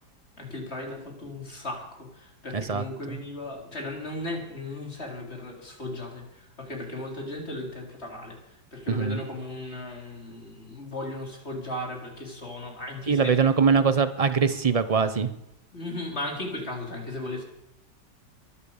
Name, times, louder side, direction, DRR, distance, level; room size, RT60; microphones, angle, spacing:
voice 1, 0.4-8.4 8.7-13.3 15.7-17.4, left 1 dB, 35° left, 1 dB, 3.9 m, -36 dB
voice 2, 2.5-2.8 8.9-9.2 13.1-15.3, right 5 dB, 60° right, 11 dB, 0.3 m, -22 dB
22.5 x 8.5 x 7.2 m, 0.84 s
omnidirectional pair, 2.0 m